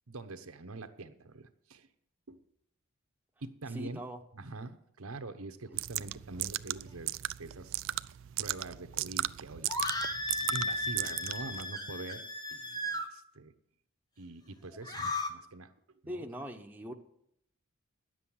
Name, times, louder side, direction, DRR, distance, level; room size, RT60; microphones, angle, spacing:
voice 1, 0.1-1.9 2.3-2.4 3.4-4.0 4.3-7.1 7.4-7.7 8.4-9.7 10.4-13.5 14.2-15.7 16.0-16.3, right 3 dB, 80° right, 9 dB, 1.0 m, -44 dB
voice 2, 3.7-4.2 5.7-5.8 16.1-16.9, equal, 10° right, 3 dB, 0.9 m, -41 dB
sound 1, 5.7-11.6, right 15 dB, 60° right, 0.3 m, -36 dB
sound 2, 9.7-13.1 14.7-15.3, left 2 dB, 20° left, 1.1 m, -35 dB
10.5 x 7.7 x 8.6 m, 0.74 s
head